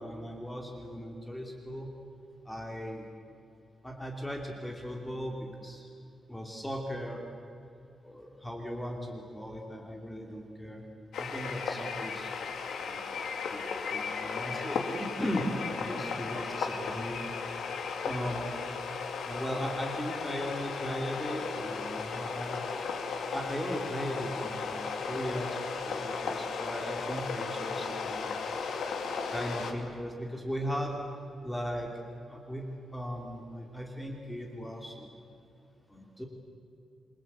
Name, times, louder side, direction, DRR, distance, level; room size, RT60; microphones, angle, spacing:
voice 1, 0.0-1.9 2.5-3.0 3.8-5.9 6.3-7.2 8.0-10.8 11.2-12.3 12.9-13.0 13.5-13.6 13.9-15.5 15.8-17.2 18.0-18.5 19.3-22.6 23.3-28.3 29.0-31.0 31.4-31.9 32.3-32.7 32.9-35.1 35.9-36.2, equal, 5° left, 1 dB, 2.8 m, -37 dB
sound 1, 11.1-29.7, left 5 dB, 85° left, 2.7 m, -35 dB
28.5 x 23.0 x 8.3 m, 2.6 s
wide cardioid pair, 180°, 0 cm